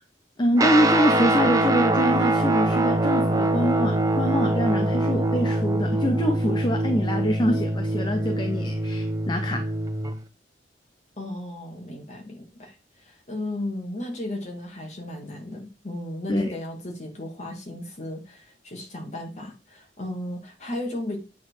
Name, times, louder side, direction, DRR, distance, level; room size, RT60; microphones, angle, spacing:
voice 1, 0.4-9.6 16.3-16.5, equal, 25° left, 0.8 m, -25 dB
Guitar, 0.6-10.2, right 2 dB, 20° right, 0.7 m, -23 dB
voice 2, 11.2-21.2, left 1 dB, 40° left, 2.3 m, -35 dB
8.4 x 4.2 x 4.8 m
head